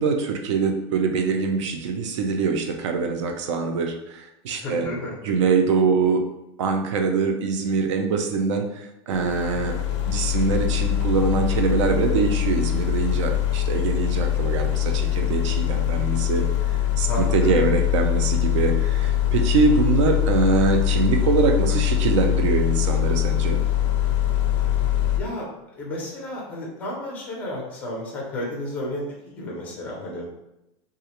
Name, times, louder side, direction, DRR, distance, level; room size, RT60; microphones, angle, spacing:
voice 1, 0.0-4.9 5.2-6.2 6.6-9.8 10.1-16.5 17.0-23.6, right 4 dB, 80° right, 4 dB, 0.5 m, -23 dB
voice 2, 4.5-5.3 17.1-17.7 25.1-25.5 25.8-30.3, left 1 dB, 10° left, -3 dB, 0.4 m, -32 dB
sound 1, 9.1-25.2, left 12 dB, 85° left, 0.4 m, -23 dB
2.4 x 2.0 x 2.8 m, 0.88 s
supercardioid pair, 180°, 15 cm